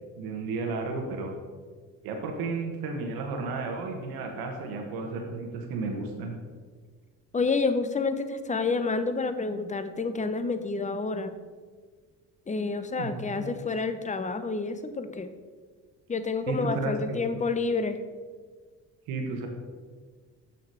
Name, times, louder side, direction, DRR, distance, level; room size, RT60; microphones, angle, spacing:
voice 1, 0.2-1.3 2.0-6.4 13.0-13.6 16.5-17.4 19.1-19.5, right 3 dB, 85° right, 2 dB, 1.2 m, -33 dB
voice 2, 7.3-11.3 12.5-15.3 16.1-18.0, left 4 dB, 20° left, 10 dB, 0.7 m, -29 dB
6.9 x 5.9 x 4.7 m, 1.5 s
supercardioid pair, 75°, 35 cm